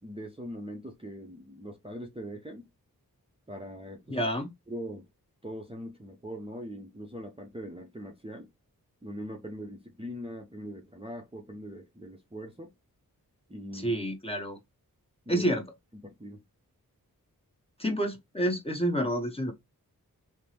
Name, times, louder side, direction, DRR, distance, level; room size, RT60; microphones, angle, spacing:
voice 1, 0.0-2.7 3.5-4.2 4.7-5.1 5.4-8.5 9.0-12.7 13.5-14.0 15.3-15.5 15.9-16.4, equal, 15° right, 0.7 m, -41 dB
voice 2, 4.1-4.5 13.7-14.6 15.3-15.6 17.8-19.5, equal, 15° left, 1.0 m, -29 dB
3.4 x 2.1 x 2.9 m
cardioid pair, 40°, 37 cm